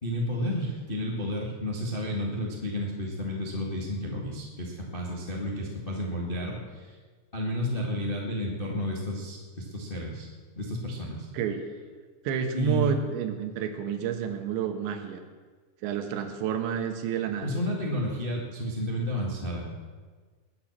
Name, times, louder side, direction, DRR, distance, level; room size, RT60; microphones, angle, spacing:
voice 1, 0.0-7.0 7.3-10.3 10.5-11.3 12.5-13.0 17.4-19.7, equal, 40° left, -2 dB, 0.7 m, -31 dB
voice 2, 12.3-15.2 15.8-17.5, right 7 dB, 80° right, 6 dB, 3.6 m, -29 dB
21.5 x 8.3 x 7.4 m, 1.4 s
omnidirectional pair, 5.2 m